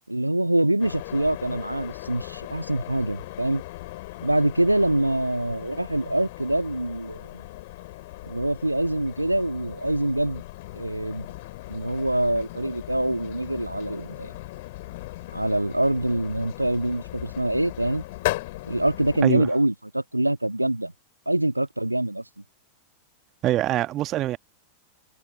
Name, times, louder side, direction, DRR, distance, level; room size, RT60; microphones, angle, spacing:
voice 1, 0.1-3.6 4.2-7.4 8.2-10.4 10.7-11.3 11.7-14.4 15.3-18.0 18.6-20.9 21.2-22.2, right 1 dB, 85° right, 1.7 m, -25 dB
sound 1, 0.8-19.2, left 19 dB, 50° left, 2.2 m, -38 dB
voice 2, 23.4-24.4, right 14 dB, 35° right, 1.7 m, -24 dB
figure-of-eight pair, 90°, 0 cm